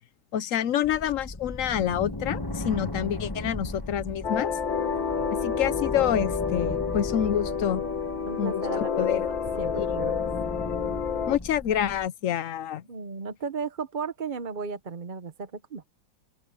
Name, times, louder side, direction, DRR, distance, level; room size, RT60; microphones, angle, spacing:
voice 1, 0.3-4.5 5.3-7.8 8.4-9.3 9.7-10.1 11.3-12.8, left 10 dB, 65° left, 0.8 m, -27 dB
sound 1, 0.8-12.1, left 2 dB, 15° left, 1.2 m, -37 dB
sound 2, 4.2-11.4, left 6 dB, 85° left, 2.4 m, -29 dB
voice 2, 8.3-9.2 9.5-10.1 12.9-15.8, right 5 dB, 40° right, 0.8 m, -35 dB
open air
omnidirectional pair, 2.0 m